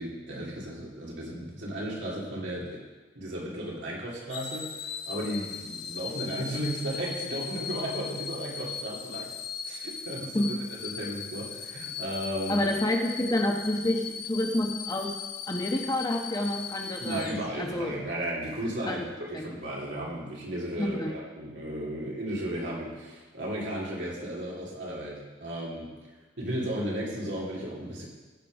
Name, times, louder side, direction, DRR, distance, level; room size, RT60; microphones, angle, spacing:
voice 1, 0.0-2.8 3.1-9.3 9.7-12.6 17.0-25.9 26.4-28.1, right 1 dB, 85° right, -4 dB, 2.9 m, -34 dB
sound 1, 4.3-17.9 18.4-18.6, left 7 dB, 60° left, 0.7 m, -38 dB
voice 2, 12.5-15.1 15.5-17.9 18.9-19.0 19.3-19.5 20.8-21.1, left 1 dB, 20° left, 2 dB, 1.0 m, -28 dB
15.5 x 5.4 x 5.2 m, 1.3 s
head